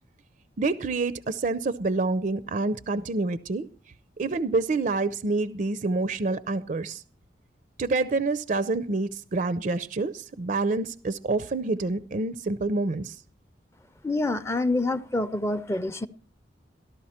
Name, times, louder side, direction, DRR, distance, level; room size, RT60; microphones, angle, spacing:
voice 1, 0.6-3.7 4.2-7.0 7.8-13.2, right 3 dB, 45° right, 0.5 m, -27 dB
voice 2, 14.0-16.1, left 2 dB, 15° left, 0.5 m, -27 dB
14.0 x 12.0 x 4.3 m
head